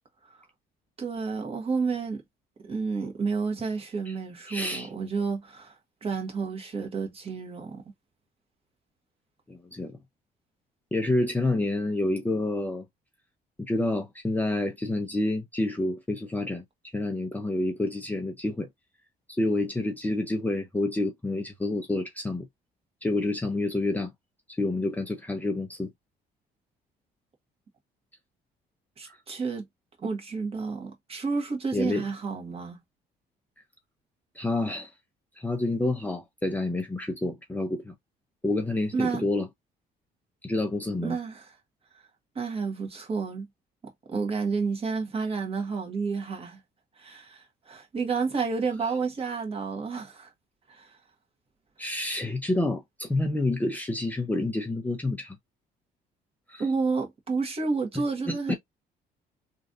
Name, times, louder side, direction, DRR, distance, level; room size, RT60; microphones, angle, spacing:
voice 1, 1.0-2.2 2.6-5.7 6.0-7.8 29.0-29.6 30.0-32.8 38.9-39.2 41.0-41.5 42.3-43.5 44.1-46.6 47.0-50.3 50.7-51.0 56.6-58.6, right 4 dB, 35° right, 1.4 m, -30 dB
voice 2, 4.5-4.9 9.5-10.0 10.9-12.8 13.6-16.6 16.9-18.7 19.4-22.5 23.0-24.1 24.6-25.9 29.1-29.2 31.7-32.0 34.4-34.9 35.4-37.9 38.4-39.5 40.4-41.2 51.8-55.4 56.5-56.7 57.9-58.5, left 2 dB, 10° left, 0.5 m, -28 dB
3.1 x 2.5 x 2.6 m
cardioid pair, 110°, 17 cm